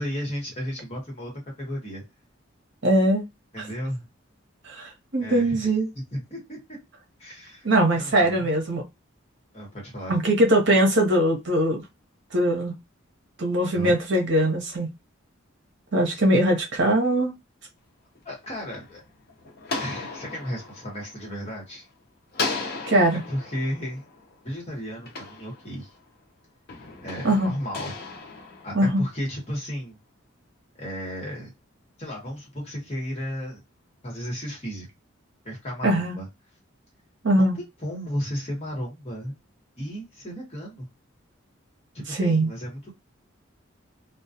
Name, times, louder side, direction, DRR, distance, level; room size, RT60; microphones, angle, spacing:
voice 1, 0.0-1.3 1.6-2.0 3.5-4.1 5.2-6.6 7.2-8.5 9.5-10.2 13.7-13.9 18.2-19.0 19.7-21.9 23.3-24.0 24.4-25.9 27.0-28.0 28.6-30.0 30.8-31.5 32.0-33.6 34.0-34.9 35.4-36.3 37.4-39.3 39.8-40.9 41.9-42.9, equal, 30° left, 1.1 m, -34 dB
voice 2, 2.8-3.2 4.6-5.9 7.6-8.8 10.1-11.8 12.3-12.8 13.4-14.9 15.9-17.3 22.8-23.2 27.2-27.5 28.7-29.0 35.8-36.2 37.2-37.6 42.1-42.5, right 1 dB, 60° right, 0.8 m, -21 dB
sound 1, 18.2-21.9 22.3-26.1 26.7-29.3, left 4 dB, 50° left, 0.6 m, -36 dB
2.3 x 2.2 x 2.7 m
head